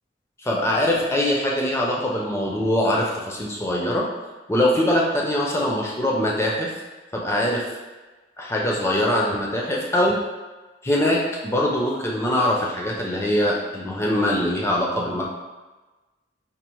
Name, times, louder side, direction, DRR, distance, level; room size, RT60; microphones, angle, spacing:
voice 1, 0.4-4.0 4.5-6.7 7.1-7.6 8.4-10.2 10.8-15.2, left 1 dB, 15° left, -3 dB, 0.4 m, -22 dB
5.2 x 2.0 x 2.9 m, 1.2 s
head